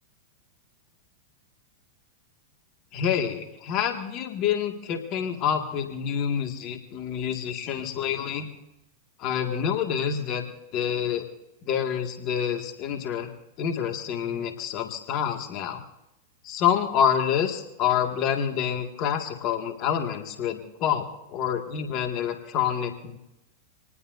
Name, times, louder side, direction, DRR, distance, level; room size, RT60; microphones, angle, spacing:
voice 1, 2.9-8.5 9.2-10.4 10.7-11.3 11.7-13.3 13.6-15.8 16.4-23.2, left 8 dB, 45° left, 4 dB, 2.1 m, -27 dB
27.0 x 19.5 x 2.7 m, 0.90 s
hypercardioid pair, 105°, 0 cm